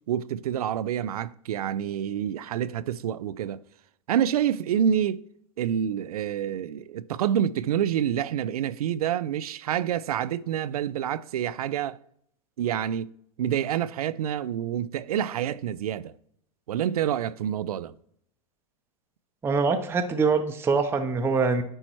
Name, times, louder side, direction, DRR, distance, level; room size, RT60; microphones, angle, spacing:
voice 1, 0.1-3.6 4.1-5.2 5.6-12.0 12.6-13.1 13.4-16.1 16.7-17.9, right 9 dB, 85° right, 0.4 m, -27 dB
voice 2, 19.4-21.6, right 4 dB, 15° right, 0.6 m, -24 dB
9.8 x 4.4 x 3.1 m
hypercardioid pair, 115°, 19 cm